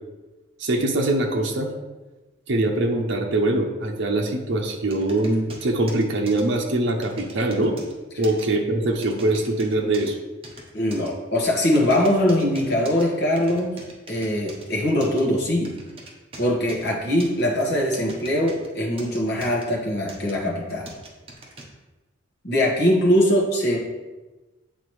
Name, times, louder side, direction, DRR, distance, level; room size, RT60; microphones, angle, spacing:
voice 1, 0.6-1.7 2.5-7.8 8.2-10.2, right 2 dB, 65° right, 1 dB, 0.7 m, -23 dB
sound 1, 4.9-6.4 7.0-7.9 8.2-8.4 9.0-10.1 10.4-11.1 11.7-13.0 13.4-14.6 15.0-15.2 15.6-16.8 17.2-18.7 19.0-19.6 20.1-20.3 20.9-21.6, right 2 dB, 30° right, 1.0 m, -42 dB
voice 2, 10.7-13.7 14.1-15.7 16.4-20.9 22.4-23.8, left 1 dB, 55° left, -2 dB, 1.4 m, -22 dB
8.7 x 3.8 x 3.2 m, 1.2 s
head